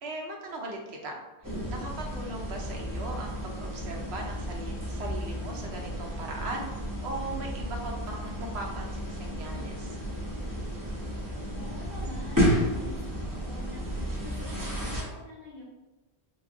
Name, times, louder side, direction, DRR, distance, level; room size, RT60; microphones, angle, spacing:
voice 1, 0.0-1.2 1.7-6.7 7.0-10.0, right 2 dB, 70° right, 1 dB, 0.9 m, -38 dB
sound 1, 1.4-15.0, equal, 20° right, 0.8 m, -32 dB
voice 2, 11.5-13.2 13.4-13.8 14.2-15.6, left 1 dB, 65° left, -8 dB, 1.2 m, -45 dB
4.6 x 2.0 x 2.5 m, 1.1 s
omnidirectional pair, 1.1 m